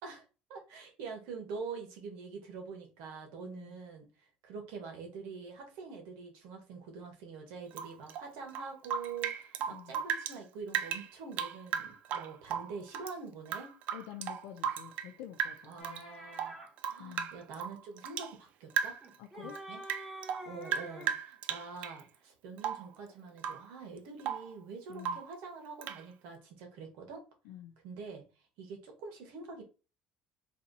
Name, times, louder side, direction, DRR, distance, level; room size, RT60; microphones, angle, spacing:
voice 1, 0.0-4.1 4.4-13.7 15.7-19.0 19.4-19.8 20.4-27.2 27.8-28.2 28.6-29.6, right 5 dB, 85° right, 1.5 m, -45 dB
voice 2, 3.4-3.8 9.7-10.0 13.9-16.0 17.0-17.3 19.2-19.6 24.9-25.2 27.4-27.8, left 11 dB, 90° left, 0.5 m, -48 dB
Rain / Drip, 7.7-10.4 10.7-13.1 13.5-15.1 15.4-16.0 16.3-18.4 18.7-19.2 19.5-22.0 22.6-22.9 23.4-23.7 24.0-24.5 25.0-25.4 25.8-26.0, right 8 dB, 60° right, 0.4 m, -36 dB
sound 1, 15.8-16.7 19.0-21.2, equal, 5° right, 1.4 m, -47 dB
3.4 x 2.7 x 4.0 m
cardioid pair, 130°, 3 cm